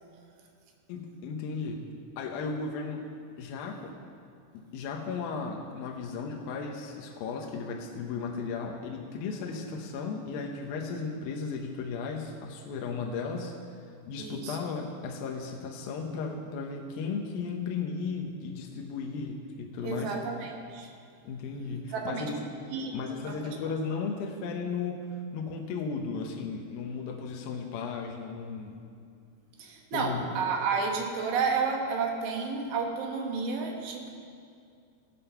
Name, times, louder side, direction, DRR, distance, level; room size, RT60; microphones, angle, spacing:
voice 1, 0.9-1.9 2.2-3.1 3.4-4.0 4.7-13.5 14.1-20.2 21.2-22.4 22.9-28.8 29.9-30.2, left 5 dB, 70° left, 1 dB, 2.5 m, -35 dB
voice 2, 14.2-14.6 19.8-20.9 21.9-22.3 22.7-22.9 23.3-23.4 29.6-34.1, right 5 dB, 80° right, 1 dB, 3.5 m, -31 dB
18.5 x 7.5 x 5.6 m, 2.3 s
omnidirectional pair, 4.9 m